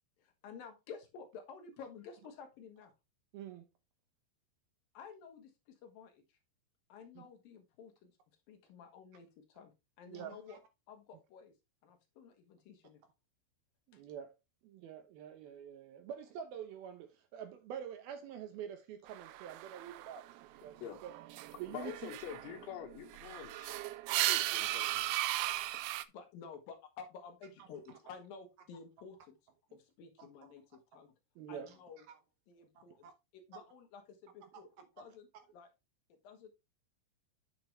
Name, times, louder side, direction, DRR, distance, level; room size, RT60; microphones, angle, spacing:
voice 1, 0.2-2.9 4.9-6.4 6.9-8.2 8.5-10.6 10.9-11.5 11.8-13.0 13.9-14.0 25.8-29.4 29.7-31.1 31.5-32.0 32.5-35.7 36.1-36.6, left 6 dB, 65° left, 2.7 m, -52 dB
voice 2, 3.3-3.7 7.2-7.3 10.1-10.6 13.9-14.4 14.6-21.1 21.6-22.1 30.2-30.3 31.4-31.7 32.1-32.2 32.8-33.1 34.5-34.6, right 9 dB, 75° right, 2.4 m, -47 dB
sound 1, 19.1-20.5 20.8-26.0, right 16 dB, 90° right, 2.2 m, -37 dB
voice 3, 21.7-23.7 24.3-25.1, left 10 dB, 85° left, 3.8 m, -46 dB
9.4 x 6.8 x 3.1 m
omnidirectional pair, 5.1 m